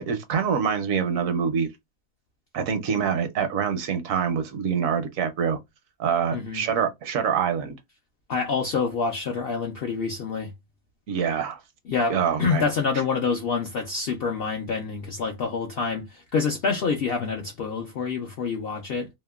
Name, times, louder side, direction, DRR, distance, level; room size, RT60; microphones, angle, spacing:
voice 1, 0.0-1.7 2.5-5.6 6.0-7.8 11.1-11.6 12.1-12.7, right 7 dB, 75° right, 1.0 m, -25 dB
voice 2, 6.3-6.6 8.3-10.5 11.9-19.1, left 5 dB, 65° left, 0.6 m, -27 dB
2.8 x 2.0 x 2.2 m
omnidirectional pair, 1.5 m